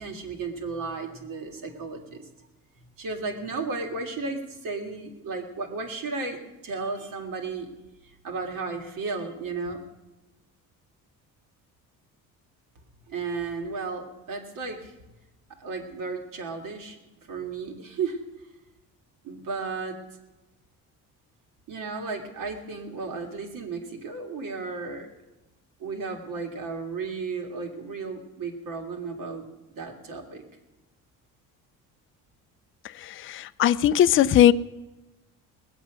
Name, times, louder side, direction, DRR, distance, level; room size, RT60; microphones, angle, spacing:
voice 1, 0.0-2.2 3.0-7.7 8.0-9.8 13.1-14.9 15.6-17.0 17.2-18.2 19.2-20.0 21.7-25.1 25.8-29.4 29.7-30.4, right 4 dB, 65° right, 2 dB, 2.3 m, -34 dB
voice 2, 33.0-34.5, left 11 dB, 35° left, 15 dB, 0.4 m, -19 dB
20.0 x 8.0 x 6.2 m, 1.1 s
cardioid pair, 105°, 36 cm